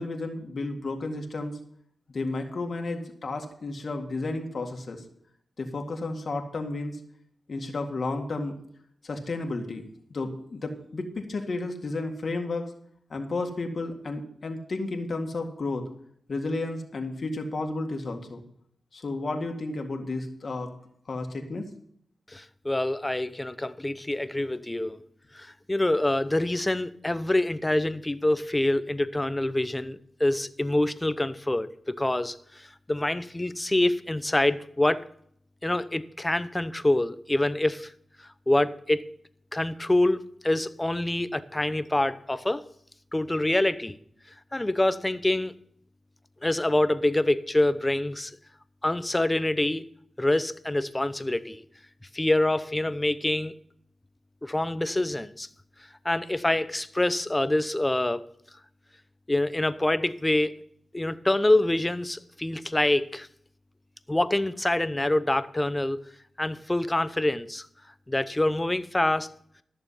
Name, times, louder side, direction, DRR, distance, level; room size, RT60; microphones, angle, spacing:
voice 1, 0.0-1.6 2.1-5.0 5.6-7.0 7.5-8.6 9.0-9.8 10.1-12.7 13.1-15.9 16.3-18.4 18.9-20.7 21.1-21.7, left 2 dB, 60° left, 1.9 m, -32 dB
voice 2, 22.3-25.0 25.3-35.0 35.6-37.9 38.5-39.1 39.5-42.6 43.1-44.0 44.5-45.5 46.4-48.3 48.8-49.8 50.2-51.6 52.1-53.5 54.4-55.5 56.0-58.2 59.3-60.5 60.9-63.3 64.1-66.0 66.4-67.7 68.1-69.3, left 1 dB, 20° left, 0.8 m, -26 dB
14.0 x 6.9 x 5.6 m
cardioid pair, 60°, 0 cm